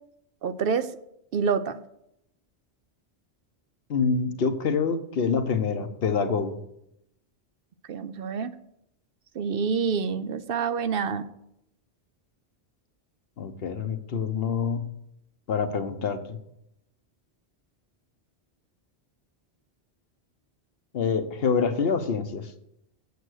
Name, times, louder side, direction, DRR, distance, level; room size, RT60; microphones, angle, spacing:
voice 1, 0.4-0.9 1.3-1.8 7.9-8.5 9.4-11.2, right 6 dB, 65° right, 12 dB, 0.7 m, -27 dB
voice 2, 3.9-6.6 13.4-14.9 15.5-16.4 20.9-22.5, left 5 dB, 65° left, 9 dB, 1.0 m, -26 dB
8.2 x 7.7 x 6.3 m, 0.80 s
omnidirectional pair, 1.1 m